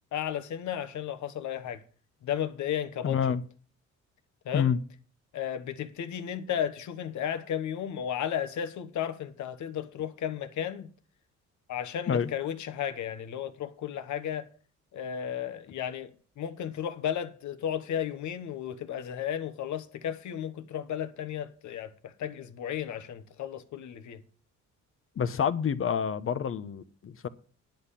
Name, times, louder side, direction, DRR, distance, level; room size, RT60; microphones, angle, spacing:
voice 1, 0.1-1.8 2.2-3.2 4.4-4.7 5.3-10.9 11.7-14.5 14.9-16.1 16.4-24.2, left 9 dB, 70° left, 1.3 m, -34 dB
voice 2, 3.0-3.4 4.5-4.8 12.1-12.3 25.2-27.3, left 7 dB, 45° left, 0.9 m, -28 dB
10.5 x 5.8 x 8.4 m
cardioid pair, 90°, 30 cm